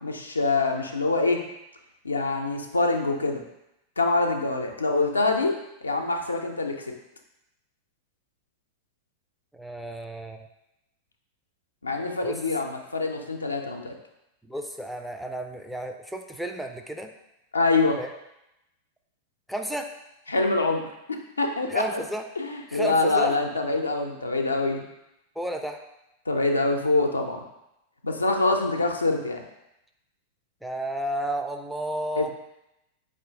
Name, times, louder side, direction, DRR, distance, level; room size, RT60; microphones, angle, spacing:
voice 1, 0.0-1.4 2.0-3.4 4.0-5.6 5.8-6.9 11.8-13.9 17.5-18.0 20.3-20.9 21.4-22.0 22.4-24.8 26.3-27.4 28.0-29.4 32.2-32.3, left 3 dB, 80° left, 3 dB, 0.4 m, -25 dB
voice 2, 9.5-10.4 12.2-12.4 14.5-17.1 18.0-18.1 19.5-19.9 21.7-22.2 22.7-23.4 25.4-25.8 30.6-32.3, right 1 dB, ahead, 4 dB, 0.3 m, -32 dB
4.2 x 2.5 x 3.5 m, 0.88 s
figure-of-eight pair, 90°, 0 cm